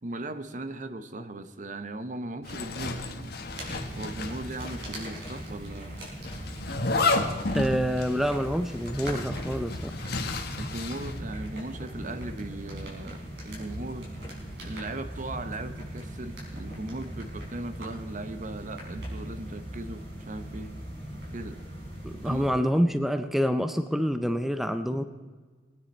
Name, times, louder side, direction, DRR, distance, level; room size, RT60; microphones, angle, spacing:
voice 1, 0.0-3.4 4.0-6.1 10.6-14.1 14.6-20.7 21.3-21.6 22.2-22.5, right 2 dB, 45° right, 11 dB, 0.8 m, -38 dB
Zipper (clothing), 2.4-5.0 5.3-5.4 6.2-11.2, left 3 dB, 60° left, 1.4 m, -32 dB
sound 1, 3.5-22.5, right 1 dB, 65° right, 4.8 m, -39 dB
voice 2, 7.5-9.9 22.0-25.0, equal, ahead, 9 dB, 0.5 m, -27 dB
20.5 x 9.6 x 4.3 m, 1.4 s
head